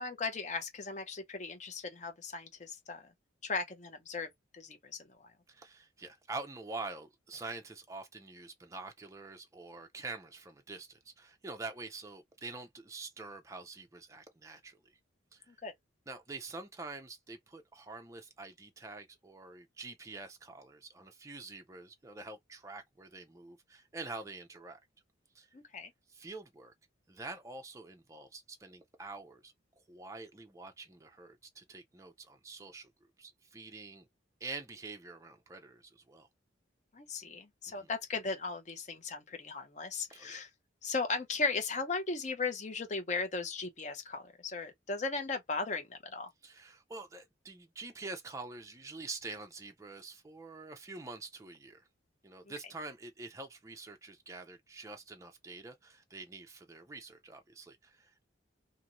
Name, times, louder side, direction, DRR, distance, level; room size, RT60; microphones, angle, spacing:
voice 1, 0.0-3.1 3.4-4.3 4.5-5.3 15.5-15.7 25.5-25.9 36.9-40.5 40.8-46.3, left 4 dB, 35° left, 0.6 m, -37 dB
voice 2, 5.5-14.8 15.3-15.5 16.1-24.8 25.3-25.5 26.1-26.7 27.1-29.5 29.9-32.9 33.2-34.1 34.4-36.3 37.7-37.9 40.1-40.4 46.4-51.9 52.2-58.3, right 3 dB, 15° right, 0.4 m, -46 dB
2.6 x 2.5 x 2.9 m
head